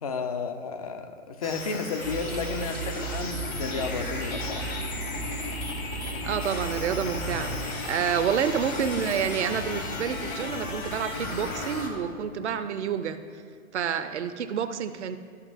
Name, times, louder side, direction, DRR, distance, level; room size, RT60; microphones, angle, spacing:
voice 1, 0.0-4.8, left 5 dB, 30° left, 8 dB, 0.4 m, -32 dB
sound 1, 1.4-11.9, left 2 dB, 80° left, 1.6 m, -37 dB
Toilet flush, 2.0-7.7, right 6 dB, 85° right, 1.5 m, -36 dB
sound 2, 3.3-12.7, left 3 dB, 55° left, 0.9 m, -37 dB
voice 2, 6.2-13.2 13.7-15.2, right 8 dB, 55° right, 10 dB, 0.6 m, -29 dB
13.5 x 5.9 x 2.5 m, 2.1 s
figure-of-eight pair, 115°, 41 cm